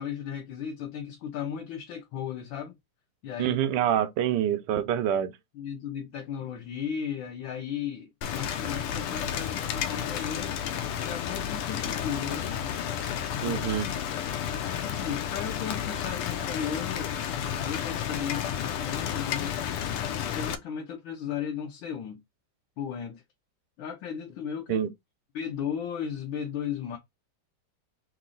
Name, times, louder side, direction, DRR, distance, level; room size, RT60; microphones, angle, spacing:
voice 1, 0.0-2.7 3.2-3.6 5.5-12.5 13.4-13.6 14.8-17.1 17.5-19.6 20.3-22.2 22.8-23.2 23.8-24.8 25.3-27.0, left 8 dB, 70° left, 1.4 m, -35 dB
voice 2, 3.4-5.3 13.4-13.9 24.7-24.9, right 10 dB, 75° right, 1.0 m, -26 dB
Rain, 8.2-20.6, left 9 dB, 85° left, 1.5 m, -32 dB
3.8 x 3.0 x 3.7 m
omnidirectional pair, 2.4 m